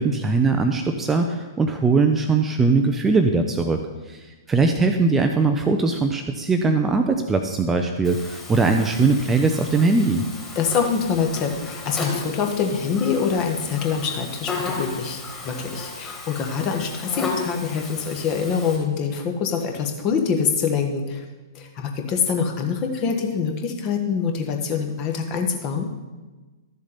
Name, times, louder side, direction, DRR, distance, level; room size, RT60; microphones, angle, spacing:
voice 1, 0.0-3.8 4.1-10.3, right 3 dB, 10° right, 5 dB, 0.6 m, -20 dB
Buzz, 8.0-18.8, left 3 dB, 10° left, 2.5 m, -34 dB
voice 2, 10.5-21.2 21.5-25.9, left 6 dB, 30° left, 3 dB, 1.3 m, -25 dB
12.5 x 7.2 x 4.2 m, 1.2 s
figure-of-eight pair, 115°, 2 cm